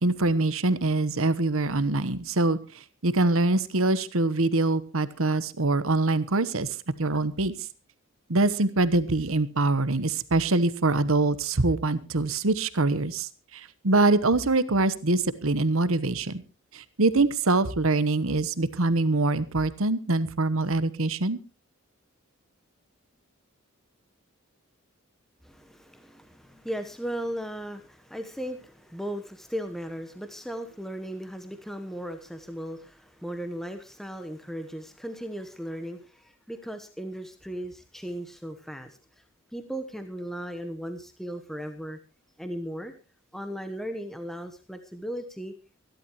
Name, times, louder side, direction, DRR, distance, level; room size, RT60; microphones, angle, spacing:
voice 1, 0.0-2.6 3.0-6.7 7.0-7.5 8.3-16.4 16.7-21.4, right 2 dB, 70° right, 15 dB, 1.1 m, -24 dB
voice 2, 25.4-39.2 39.5-42.0 42.4-42.9 43.3-45.5, equal, ahead, 7 dB, 1.0 m, -37 dB
25.0 x 12.0 x 3.1 m, 0.31 s
head